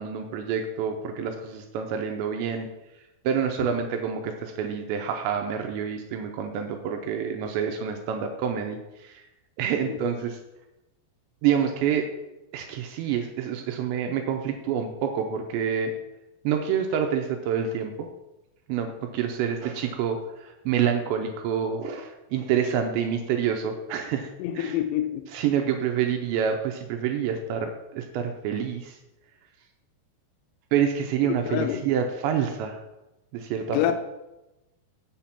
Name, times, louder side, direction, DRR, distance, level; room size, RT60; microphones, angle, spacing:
voice 1, 0.0-2.7 3.2-9.2 9.6-10.4 11.4-12.1 12.5-15.9 16.4-18.1 18.7-24.8 25.3-29.0 30.7-32.8 33.3-33.9, right 8 dB, 80° right, 4 dB, 2.7 m, -27 dB
voice 2, 24.4-25.3 31.5-31.8 33.7-33.9, left 12 dB, 80° left, 7 dB, 2.9 m, -26 dB
7.6 x 7.4 x 5.8 m, 0.97 s
omnidirectional pair, 5.6 m